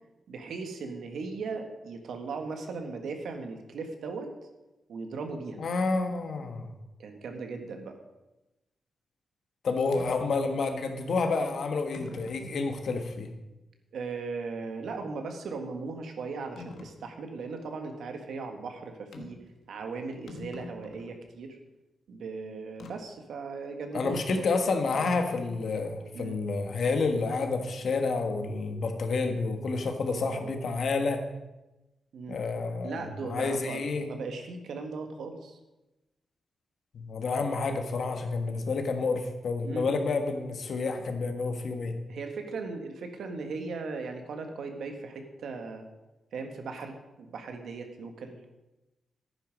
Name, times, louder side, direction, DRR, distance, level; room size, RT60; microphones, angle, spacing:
voice 1, 0.3-4.3 4.9-5.6 7.0-8.0 13.9-19.4 19.7-21.6 22.1-24.6 26.1-26.4 30.1-30.5 32.1-32.4 32.8-35.6 39.6-39.9 42.1-45.8 46.3-48.4, right 4 dB, 85° right, 5 dB, 1.6 m, -38 dB
voice 2, 5.6-6.7 9.6-13.3 23.9-31.2 32.3-34.1 36.9-42.0, left 4 dB, 60° left, 5 dB, 1.4 m, -29 dB
sound 1, 9.9-10.2 11.1-11.2 11.9-12.5 13.1-13.2 16.6-17.0 19.1-19.5 19.8-19.9 20.1-21.2 22.8-23.0 24.9-25.3, left 3 dB, 85° left, 1.3 m, -44 dB
11.0 x 9.9 x 5.2 m, 1.0 s
wide cardioid pair, 135°, 0 cm